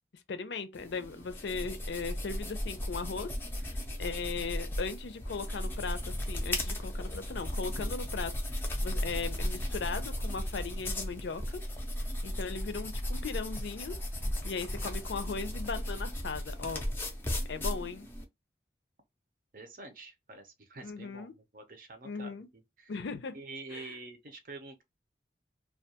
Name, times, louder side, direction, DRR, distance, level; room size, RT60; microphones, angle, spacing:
voice 1, 0.3-3.3 3.6-11.6 12.2-14.0 14.4-16.8 17.5-18.1 20.8-21.3 22.0-22.5 22.9-23.4 23.7-23.9, left 4 dB, 80° left, 0.5 m, -38 dB
sound 1, 0.7-18.2, left 1 dB, 10° left, 0.4 m, -35 dB
voice 2, 19.5-22.9 23.3-24.8, right 3 dB, 50° right, 0.6 m, -47 dB
2.3 x 2.2 x 2.7 m
head